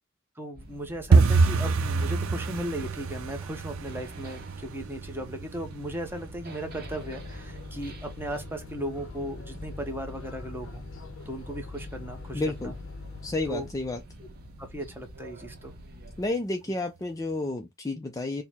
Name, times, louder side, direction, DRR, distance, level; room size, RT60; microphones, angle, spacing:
voice 1, 0.4-10.8 11.3-12.7 13.5-13.7 14.6-15.7, right 1 dB, 10° right, 0.8 m, -36 dB
sound 1, 0.6-16.3, equal, 50° right, 1.0 m, -47 dB
sound 2, 1.1-11.8 12.1-12.8 13.0-13.3 13.6-14.0 14.3-14.4 14.9-15.4 15.8-15.9 16.4-16.5, right 4 dB, 85° right, 0.5 m, -28 dB
sound 3, 6.6-13.7, left 4 dB, 65° left, 0.7 m, -43 dB
voice 2, 12.3-12.7 13.2-14.0 16.2-18.4, left 2 dB, 15° left, 0.4 m, -31 dB
4.5 x 2.1 x 3.4 m
head